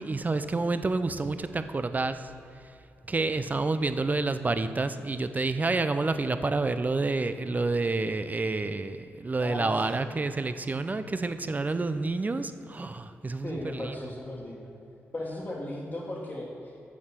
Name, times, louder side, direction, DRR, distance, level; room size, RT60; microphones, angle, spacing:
voice 1, 0.0-2.3 3.1-14.0, right 3 dB, 35° right, 10 dB, 0.6 m, -29 dB
voice 2, 9.4-9.9 13.4-14.7 15.1-16.8, left 1 dB, 35° left, -6 dB, 1.5 m, -37 dB
7.2 x 6.7 x 6.0 m, 2.8 s
supercardioid pair, 50°, 5 cm